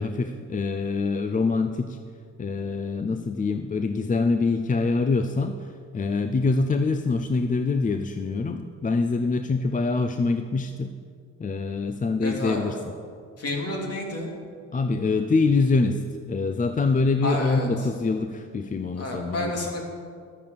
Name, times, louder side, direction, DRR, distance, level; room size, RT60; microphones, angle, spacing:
voice 1, 0.0-2.0 2.4-10.9 11.4-12.8 14.7-16.0 16.3-19.7, left 3 dB, 25° left, 7 dB, 0.6 m, -25 dB
voice 2, 12.2-12.8 13.4-14.3 17.2-17.9 19.0-19.8, left 1 dB, 55° left, 0 dB, 3.1 m, -30 dB
12.0 x 8.3 x 6.9 m, 2.1 s
cardioid pair, 90°, 30 cm